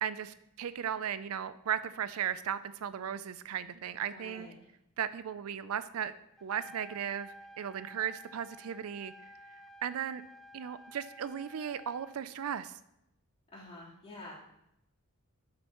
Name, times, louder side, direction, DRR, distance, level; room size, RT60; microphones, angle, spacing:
voice 1, 0.0-4.5 5.0-6.1 6.4-9.1 9.8-10.2 10.5-12.7, right 8 dB, 70° right, 14 dB, 0.4 m, -36 dB
voice 2, 4.1-4.5 13.5-14.4, left 2 dB, 30° left, -7 dB, 3.5 m, -48 dB
Trumpet, 6.4-12.2, equal, ahead, 0.3 m, -52 dB
12.5 x 7.7 x 3.0 m, 0.82 s
head